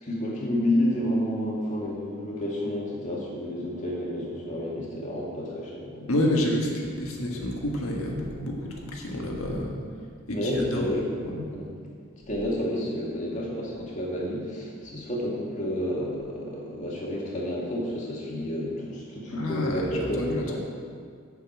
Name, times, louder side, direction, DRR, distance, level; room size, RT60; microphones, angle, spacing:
voice 1, 0.0-6.1 9.4-9.6 10.3-11.0 11.5-11.7 12.3-20.6, left 1 dB, 35° left, -4 dB, 2.1 m, -30 dB
voice 2, 6.1-9.8 10.3-10.9 11.2-11.4 19.3-20.6, left 1 dB, 80° left, -1 dB, 1.6 m, -29 dB
7.0 x 7.0 x 8.0 m, 2.1 s
head